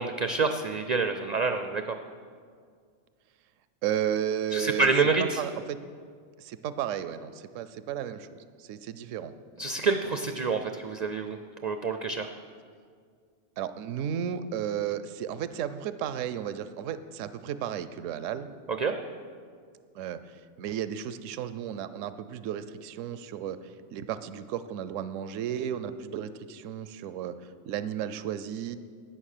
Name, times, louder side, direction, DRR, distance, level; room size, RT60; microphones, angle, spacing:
voice 1, 0.0-2.0 4.5-5.4 9.6-11.4 11.6-12.3 18.8-18.9, right 4 dB, 55° right, 7 dB, 0.5 m, -27 dB
voice 2, 3.8-4.9 5.4-5.8 6.4-9.3 13.6-18.5 19.9-28.8, right 9 dB, 80° right, 13 dB, 0.9 m, -34 dB
11.5 x 9.4 x 6.6 m, 2.1 s
omnidirectional pair, 1.3 m